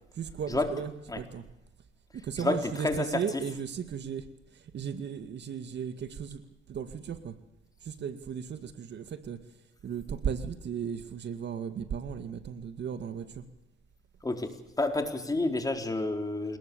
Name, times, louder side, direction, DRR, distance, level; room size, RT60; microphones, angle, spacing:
voice 1, 0.1-1.5 2.1-7.4 7.8-13.5, right 7 dB, 60° right, 9 dB, 2.2 m, -36 dB
voice 2, 2.4-3.1 14.2-16.6, left 2 dB, 20° left, 4 dB, 4.1 m, -29 dB
28.5 x 20.0 x 7.0 m, 0.86 s
cardioid pair, 90°, 20 cm